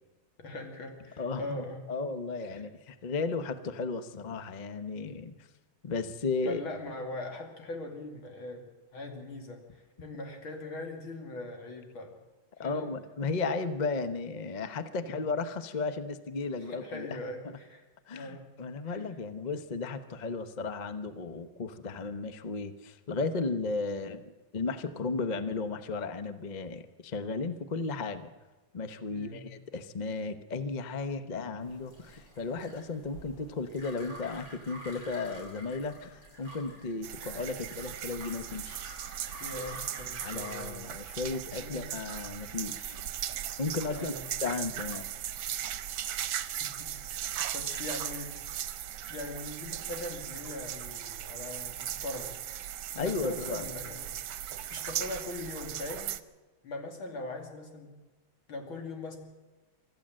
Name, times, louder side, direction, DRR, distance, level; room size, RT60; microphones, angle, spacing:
voice 1, 0.4-1.9 2.5-2.6 6.4-12.1 12.6-12.9 15.0-15.3 16.6-17.8 18.1-18.5 18.8-19.0 29.1-29.5 39.4-40.9 41.6-42.0 43.9-44.3 46.6-47.2 47.5-48.4 49.1-52.4 52.9-54.1 54.7-56.1 56.6-57.9 58.5-59.2, left 2 dB, 85° left, 3 dB, 3.4 m, -41 dB
voice 2, 1.2-1.6 1.9-5.4 5.8-6.6 12.6-17.2 18.1-28.3 28.7-38.8 40.2-43.0 43.6-44.1 44.4-45.1 52.9-53.6, left 4 dB, 35° left, 10 dB, 0.7 m, -34 dB
sound 1, 31.6-40.6, right 1 dB, 50° left, 7.4 m, -49 dB
sound 2, 37.0-56.2, right 11 dB, 75° right, 1.6 m, -38 dB
25.0 x 13.5 x 7.6 m, 1.2 s
omnidirectional pair, 2.2 m